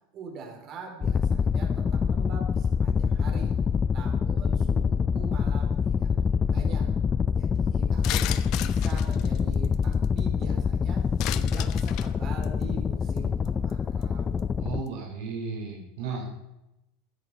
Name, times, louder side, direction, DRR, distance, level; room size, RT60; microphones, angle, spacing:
voice 1, 0.1-3.5 3.9-6.9 7.3-11.0 11.3-14.5, right 4 dB, 45° right, 2 dB, 4.5 m, -43 dB
sound 1, 1.0-14.8, left 6 dB, 25° left, 0.4 m, -25 dB
sound 2, 8.0-10.2 11.2-12.1 12.4-12.6 13.2-13.3 13.4-13.7 14.0-14.1, left 15 dB, 55° left, 1.0 m, -34 dB
voice 2, 14.6-16.3, right 4 dB, 70° right, 1 dB, 4.1 m, -34 dB
16.0 x 10.5 x 5.2 m, 0.88 s
hypercardioid pair, 100°, 0 cm